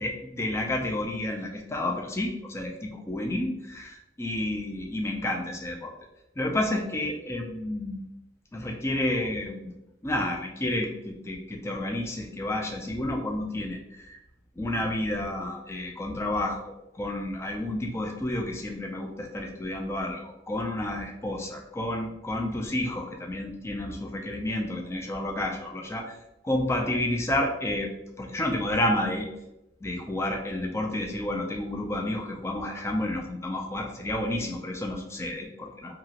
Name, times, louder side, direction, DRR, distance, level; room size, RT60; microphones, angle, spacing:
voice 1, 0.0-5.9 6.4-8.0 8.5-9.7 10.0-14.2 14.6-26.2 26.4-27.9 28.2-29.3 29.8-36.0, left 1 dB, 15° left, 1 dB, 0.3 m, -30 dB
2.8 x 2.8 x 2.5 m, 0.90 s
head